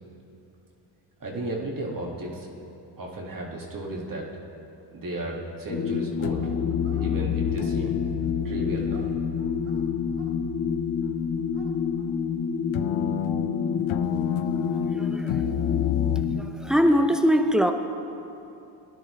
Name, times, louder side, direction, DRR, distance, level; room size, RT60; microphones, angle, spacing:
voice 1, 1.2-2.5 3.0-4.3 4.9-6.5 7.0-8.0 8.4-9.1, right 2 dB, 40° right, -2 dB, 1.9 m, -34 dB
sound 1, 5.7-6.0 6.2-12.4 12.7-16.2, left 11 dB, 70° left, 0.7 m, -32 dB
sound 2, 5.7-16.4, left 6 dB, 30° left, 1.2 m, -28 dB
Dog, 6.2-7.1 8.2-10.3 11.0-11.1 11.4-12.1, right 5 dB, 75° right, 1.5 m, -49 dB
voice 2, 14.7-15.5 16.2-17.7, equal, ahead, 7 dB, 0.6 m, -23 dB
17.0 x 10.5 x 3.2 m, 2.8 s
cardioid pair, 85°, 50 cm